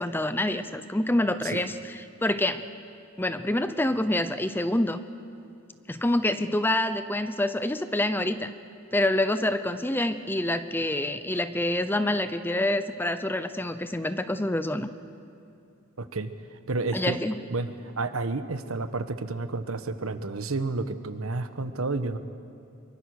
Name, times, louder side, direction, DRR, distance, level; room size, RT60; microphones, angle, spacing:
voice 1, 0.0-2.6 3.2-5.0 5.9-8.5 8.9-14.9 16.9-17.4, left 1 dB, 10° left, 11 dB, 0.6 m, -27 dB
voice 2, 16.0-16.3 16.7-17.2 17.5-22.2, right 3 dB, 80° right, 10 dB, 1.2 m, -30 dB
24.5 x 23.0 x 6.5 m, 2.6 s
head